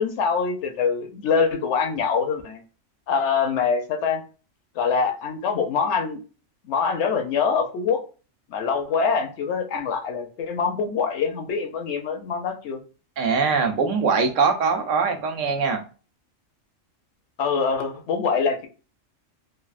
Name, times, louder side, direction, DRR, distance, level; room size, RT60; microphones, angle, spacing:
voice 1, 0.0-2.6 3.1-4.2 4.8-6.2 6.7-8.0 8.5-12.8 17.4-18.7, left 5 dB, 70° left, 5 dB, 0.8 m, -24 dB
voice 2, 13.2-15.8, right 5 dB, 75° right, 6 dB, 0.9 m, -22 dB
3.3 x 2.3 x 2.4 m, 0.36 s
omnidirectional pair, 1.3 m